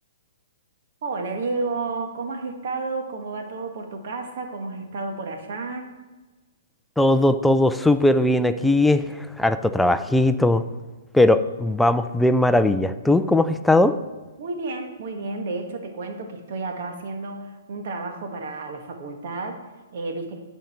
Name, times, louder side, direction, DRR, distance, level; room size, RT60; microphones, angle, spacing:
voice 1, 1.0-5.9 14.4-20.4, right 3 dB, 60° right, 4 dB, 1.5 m, -31 dB
voice 2, 7.0-10.6 11.1-13.9, left 1 dB, 5° left, 9 dB, 0.4 m, -19 dB
11.5 x 5.3 x 4.4 m, 1.2 s
hypercardioid pair, 150°, 0 cm